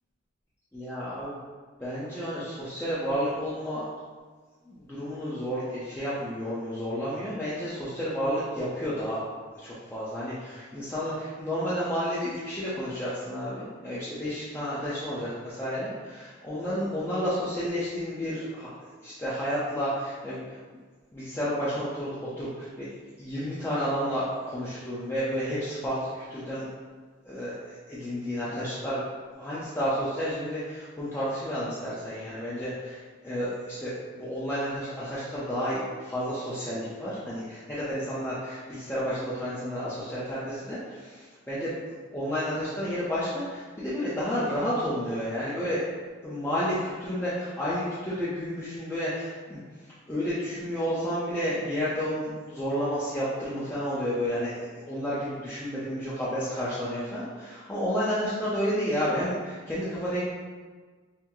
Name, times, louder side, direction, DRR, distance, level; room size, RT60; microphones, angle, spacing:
voice 1, 0.7-1.4 1.8-3.8 4.7-9.2 9.5-18.7 19.0-20.6 21.1-26.6 27.2-29.0 29.4-41.7 42.1-45.8 46.2-49.6 50.1-54.5 54.9-60.2, equal, 10° left, -10 dB, 0.6 m, -31 dB
5.7 x 2.1 x 3.0 m, 1.4 s
head